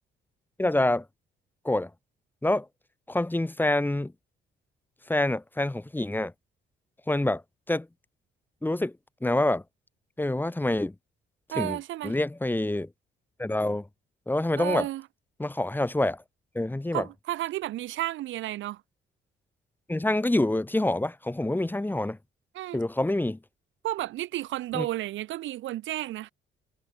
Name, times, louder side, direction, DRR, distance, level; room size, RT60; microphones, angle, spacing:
voice 1, 0.6-1.0 1.6-1.9 2.4-2.7 3.1-4.1 5.1-6.3 7.1-7.4 7.7-7.9 8.6-8.9 9.2-9.6 10.2-10.9 11.5-11.8 12.0-12.9 13.4-13.9 14.3-14.9 15.4-16.2 16.5-17.0 19.9-22.2 22.7-23.4 24.7-24.9, left 1 dB, 10° left, 1.4 m, -26 dB
voice 2, 11.5-12.2 14.6-15.0 16.9-18.8 22.5-22.8 23.8-26.3, right 15 dB, 75° right, 0.5 m, -32 dB
cardioid pair, 90°, 20 cm